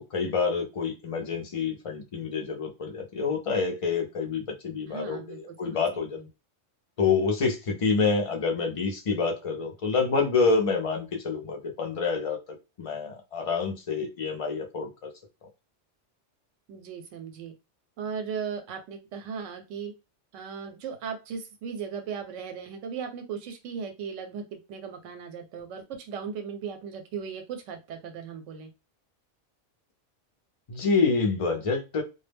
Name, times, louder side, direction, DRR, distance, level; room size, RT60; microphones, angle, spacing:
voice 1, 0.0-6.2 7.0-15.1 30.7-32.0, left 4 dB, 50° left, 3 dB, 0.4 m, -27 dB
voice 2, 4.8-5.8 6.2-6.3 16.7-17.5 18.0-19.9 20.3-28.7, right 6 dB, 85° right, 6 dB, 0.9 m, -37 dB
2.2 x 2.0 x 3.3 m, 0.27 s
omnidirectional pair, 1.2 m